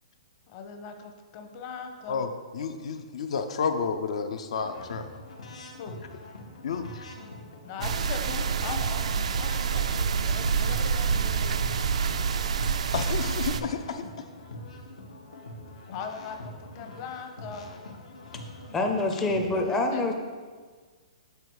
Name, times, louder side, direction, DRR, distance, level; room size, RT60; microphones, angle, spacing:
voice 1, 0.5-2.3 5.8-6.0 7.6-11.6 15.9-17.7 19.5-19.6 19.9-20.1, left 5 dB, 35° left, 5 dB, 0.8 m, -40 dB
voice 2, 2.1-5.1 6.6-7.1 12.9-14.0, left 6 dB, 70° left, 7 dB, 0.6 m, -31 dB
sound 1, 4.6-19.6, left 1 dB, 85° left, 1.1 m, -44 dB
sound 2, 7.8-13.6, right 6 dB, 80° right, 0.4 m, -27 dB
voice 3, 18.7-20.1, left 2 dB, 10° left, 2 dB, 0.5 m, -26 dB
6.8 x 4.8 x 4.7 m, 1.5 s
hypercardioid pair, 155°, 3 cm